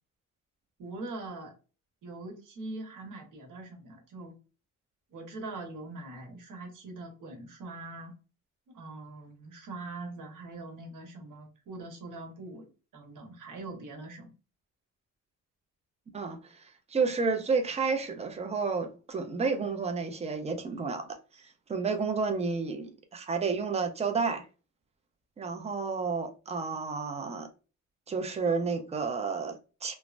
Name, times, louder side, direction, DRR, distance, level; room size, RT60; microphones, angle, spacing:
voice 1, 0.8-1.5 2.0-4.3 5.1-8.1 8.7-12.7 12.9-14.3, right 2 dB, 75° right, 1.1 m, -42 dB
voice 2, 16.9-24.4 25.4-27.5 28.1-29.9, right 4 dB, 20° right, 0.4 m, -31 dB
3.1 x 2.1 x 2.4 m
wide cardioid pair, 175°, 32 cm